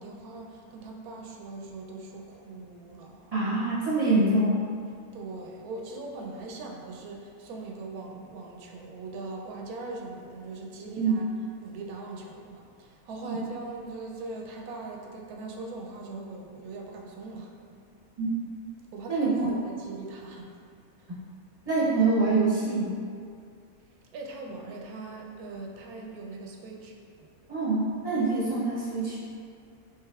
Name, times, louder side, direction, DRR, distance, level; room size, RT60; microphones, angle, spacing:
voice 1, 0.0-3.3 5.1-11.3 11.6-17.6 18.9-20.6 24.1-27.3, right 3 dB, 90° right, 0 dB, 1.1 m, -40 dB
voice 2, 3.3-4.7 11.0-11.1 13.2-13.4 18.2-18.3 19.1-19.3 21.7-23.0 27.5-29.2, right 3 dB, 35° right, -9 dB, 0.7 m, -25 dB
4.7 x 3.2 x 2.3 m, 2.3 s
omnidirectional pair, 1.5 m